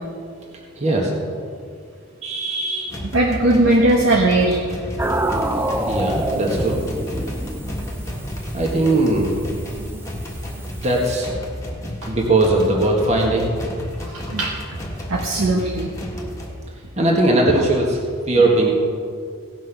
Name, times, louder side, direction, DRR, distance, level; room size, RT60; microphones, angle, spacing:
voice 1, 0.8-1.1 2.2-2.9 5.8-6.9 8.5-9.3 10.8-11.3 12.1-13.5 17.0-18.0 18.3-18.7, right 2 dB, 30° right, -1 dB, 1.6 m, -19 dB
sound 1, 2.9-16.6, equal, 15° left, 1.5 m, -32 dB
voice 2, 3.1-4.6 5.9-6.0 9.8-10.0 12.0-12.1 14.0-14.5 15.1-15.9, right 2 dB, 75° right, -2 dB, 1.2 m, -19 dB
sound 2, 5.0-11.2, right 1 dB, 10° right, 0.5 m, -28 dB
17.5 x 6.1 x 6.0 m, 2.2 s
head